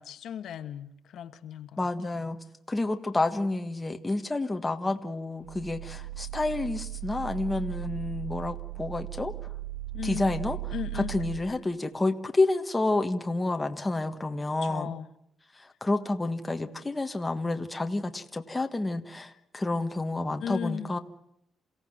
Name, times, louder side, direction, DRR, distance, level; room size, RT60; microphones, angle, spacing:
voice 1, 0.0-1.7 9.9-10.3 10.7-11.1 14.7-15.1 20.4-20.9, left 9 dB, 70° left, 8 dB, 1.5 m, -36 dB
voice 2, 1.8-2.4 2.7-9.3 10.0-14.9 15.5-21.0, left 2 dB, 15° left, 5 dB, 1.5 m, -29 dB
sound 1, 5.4-11.4, right 17 dB, 90° right, 2.2 m, -37 dB
28.5 x 16.5 x 7.7 m, 0.78 s
cardioid pair, 140°, 0 cm